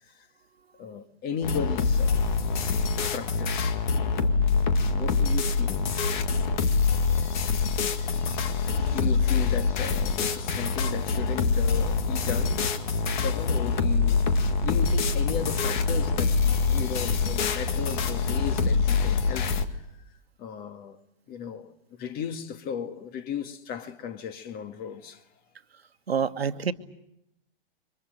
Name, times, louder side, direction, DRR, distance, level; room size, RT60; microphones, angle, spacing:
voice 1, 0.8-2.3 3.1-3.8 4.9-5.9 8.5-12.7 13.2-14.2 14.6-19.5 20.4-21.0 21.3-25.2, left 7 dB, 30° left, 1.8 m, -35 dB
sound 1, 1.4-19.6, left 4 dB, 50° left, 2.0 m, -25 dB
sound 2, 13.0-18.6, left 1 dB, 10° left, 3.2 m, -44 dB
voice 2, 26.1-26.7, right 6 dB, 85° right, 1.5 m, -27 dB
28.5 x 24.5 x 6.6 m
hypercardioid pair, 120°, 30 cm